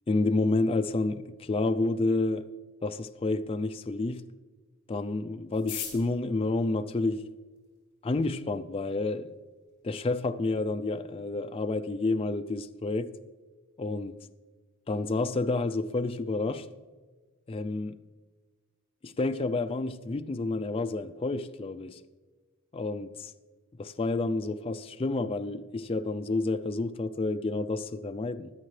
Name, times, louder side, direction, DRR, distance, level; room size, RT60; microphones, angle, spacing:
voice 1, 0.1-2.4 2.8-4.2 4.9-7.3 8.0-9.3 9.8-13.1 13.8-14.2 14.9-16.7 17.5-18.0 19.0-22.0 22.7-23.3 23.8-28.5, left 2 dB, 25° left, 0.4 m, -29 dB
sound 1, 5.5-7.8 8.6-8.7 8.9-9.0 9.2-9.7 10.0-10.1 10.3-10.7 11.1-11.3 11.6-11.9, left 9 dB, 55° left, 4.0 m, -41 dB
16.5 x 10.5 x 3.3 m
head